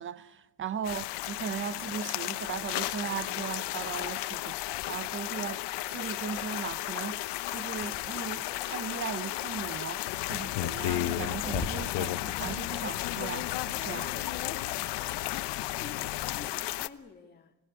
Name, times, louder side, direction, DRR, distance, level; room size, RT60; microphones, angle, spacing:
voice 1, 0.0-5.6 5.9-10.0 10.3-14.1, right 8 dB, 25° right, 0.8 m, -38 dB
sound 1, 0.8-16.9, left 17 dB, 65° left, 1.0 m, -34 dB
sound 2, 7.8-12.7, right 1 dB, 5° right, 1.8 m, -43 dB
sound 3, 10.1-16.5, left 16 dB, 90° left, 1.1 m, -37 dB
voice 2, 13.7-17.6, left 5 dB, 20° left, 2.3 m, -49 dB
26.0 x 17.5 x 9.7 m
cardioid pair, 155°, 45 cm